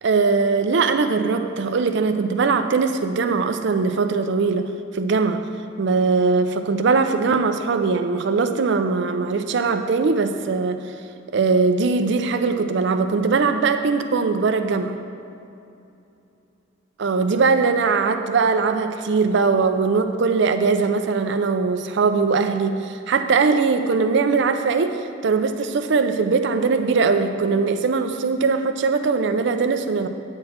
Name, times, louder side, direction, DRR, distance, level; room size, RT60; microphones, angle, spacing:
voice 1, 0.0-4.7 4.9-5.4 5.8-10.8 11.3-15.0 17.0-30.1, right 4 dB, 65° right, 7 dB, 0.5 m, -20 dB
9.7 x 4.5 x 7.4 m, 2.7 s
head